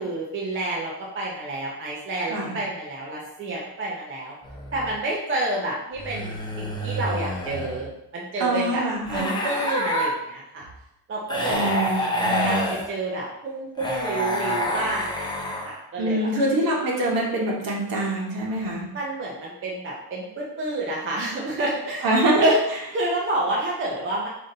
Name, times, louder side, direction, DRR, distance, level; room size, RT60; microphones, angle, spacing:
voice 1, 0.0-4.3 4.7-8.8 9.1-10.7 11.1-11.7 12.4-12.6 12.9-16.3 18.9-22.1 22.4-22.6 22.9-24.3, right 1 dB, 30° right, -4 dB, 0.6 m, -29 dB
sound 1, 4.4-5.0 6.0-7.9 9.1-10.1 11.3-12.9 13.8-15.8, left 1 dB, 10° left, 0.5 m, -28 dB
voice 2, 8.4-9.3 11.5-12.7 16.0-18.9 22.0-22.5, right 1 dB, 55° right, -3 dB, 1.3 m, -24 dB
5.0 x 2.8 x 3.8 m, 0.82 s
cardioid pair, 175°, 41 cm